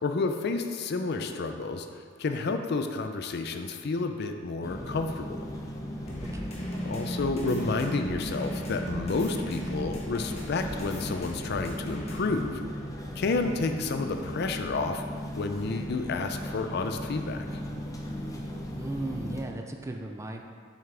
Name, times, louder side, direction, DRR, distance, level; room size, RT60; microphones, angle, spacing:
voice 1, 0.0-5.5 6.8-12.6 13.2-15.0 15.4-17.4, left 3 dB, 55° left, 6 dB, 0.5 m, -30 dB
sound 1, 4.6-19.4, equal, 20° left, 0.7 m, -37 dB
sound 2, 6.1-12.2, equal, 35° left, 1.1 m, -37 dB
voice 2, 6.2-6.6 18.8-20.4, right 2 dB, 15° right, 3 dB, 0.4 m, -37 dB
7.3 x 5.7 x 3.3 m, 2.1 s
head